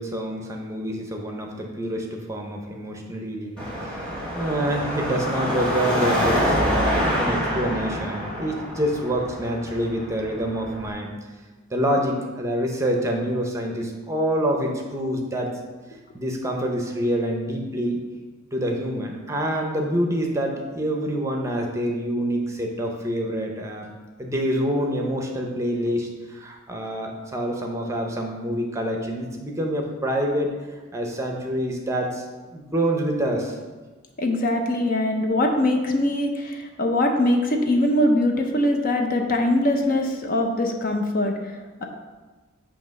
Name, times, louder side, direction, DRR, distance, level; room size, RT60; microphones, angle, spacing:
voice 1, 0.0-4.0 4.3-11.1 11.7-15.6 16.1-18.0 18.5-23.9 24.2-30.5 30.9-32.2 32.5-33.6, equal, 15° right, 1 dB, 0.7 m, -26 dB
Car passing by / Traffic noise roadway noise / Engine, 3.6-10.9, equal, 5° left, 1.5 m, -26 dB
voice 2, 34.2-41.8, left 1 dB, 45° left, 3 dB, 0.7 m, -22 dB
7.7 x 2.9 x 5.2 m, 1.3 s
head